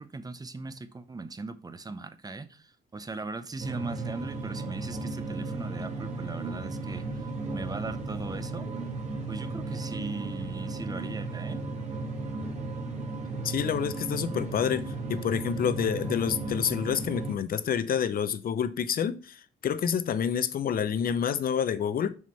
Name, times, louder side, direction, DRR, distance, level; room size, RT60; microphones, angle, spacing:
voice 1, 0.0-8.7 9.3-11.6, right 3 dB, 20° right, 0.6 m, -39 dB
sound 1, 3.6-17.4, right 3 dB, 35° right, 1.6 m, -35 dB
voice 2, 13.4-22.2, left 8 dB, 50° left, 0.6 m, -28 dB
6.2 x 3.7 x 4.3 m
cardioid pair, 90°, 20 cm